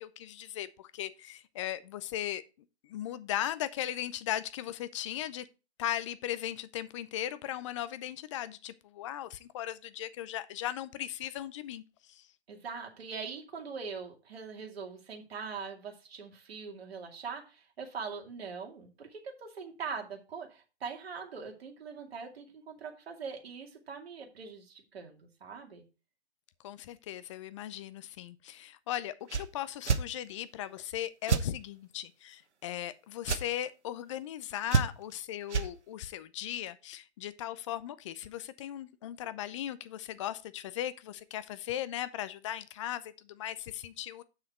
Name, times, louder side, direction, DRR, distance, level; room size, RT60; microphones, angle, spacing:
voice 1, 0.0-2.4 2.8-5.5 5.8-11.8 12.1-12.3 26.6-44.2, left 12 dB, 30° left, 0.5 m, -38 dB
voice 2, 12.5-25.8, right 5 dB, 60° right, 2.4 m, -42 dB
sound 1, 29.3-29.5 29.8-30.0 31.3-31.5 33.2-33.4 34.7-35.1 35.5-35.7, right 5 dB, 90° right, 1.0 m, -27 dB
7.5 x 6.3 x 4.3 m
hypercardioid pair, 130°, 34 cm